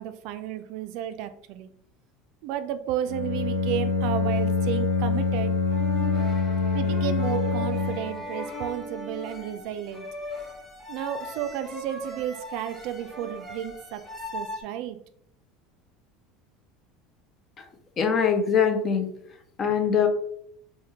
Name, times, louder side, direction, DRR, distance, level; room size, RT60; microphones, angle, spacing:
voice 1, 0.0-1.7 2.4-5.5 6.7-10.1 10.9-14.0 14.3-15.0, right 11 dB, 60° right, 9 dB, 0.3 m, -32 dB
Bowed string instrument, 3.1-8.2, left 4 dB, 85° left, 0.5 m, -25 dB
sound 1, 4.2-14.6, left 1 dB, ahead, 0.8 m, -39 dB
voice 2, 18.0-19.1 19.6-20.1, left 7 dB, 30° left, 6 dB, 0.4 m, -22 dB
3.3 x 2.1 x 2.8 m, 0.67 s
supercardioid pair, 140°, 0 cm